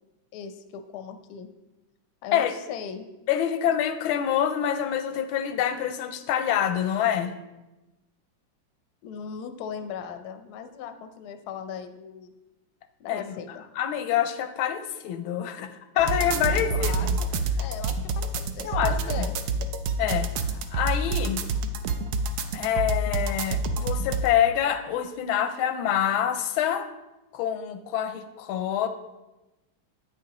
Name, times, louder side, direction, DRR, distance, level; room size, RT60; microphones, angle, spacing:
voice 1, 0.3-1.5 2.2-3.1 9.0-12.3 13.0-13.6 16.7-17.1 17.6-19.3, left 7 dB, 70° left, 8 dB, 0.9 m, -38 dB
voice 2, 3.3-7.3 13.1-13.3 13.8-17.2 18.6-19.3 20.0-21.4 22.5-26.9 27.3-28.9, left 10 dB, 90° left, 9 dB, 1.4 m, -26 dB
sound 1, 16.0-24.3, right 3 dB, 80° right, 0.8 m, -27 dB
8.5 x 6.5 x 2.9 m, 1.0 s
omnidirectional pair, 2.2 m